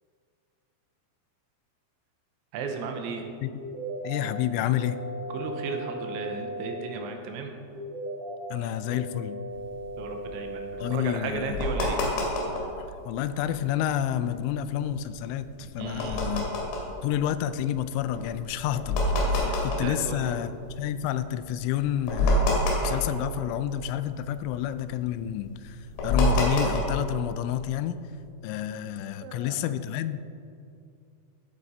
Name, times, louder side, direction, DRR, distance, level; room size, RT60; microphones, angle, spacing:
voice 1, 2.5-3.2 5.3-7.5 10.0-12.0 15.8-16.2 19.4-19.5 19.8-20.3 29.2-29.6, right 4 dB, 80° right, 4 dB, 3.2 m, -35 dB
sound 1, 3.6-4.2 4.7-6.7 7.8-8.4 8.9-10.9, right 1 dB, 65° right, 3.7 m, -37 dB
voice 2, 4.0-5.0 8.5-9.4 10.8-11.7 12.8-16.6 17.0-28.0 28.4-30.2, left 11 dB, 85° left, 13 dB, 2.9 m, -30 dB
sound 2, 9.6-12.8 13.2-13.3 13.5-13.8 14.3-20.9 21.4-21.5 21.8-23.9 24.1-27.2, left 1 dB, 70° left, 4.1 m, -27 dB
14.5 x 7.9 x 4.2 m, 2.5 s
omnidirectional pair, 5.5 m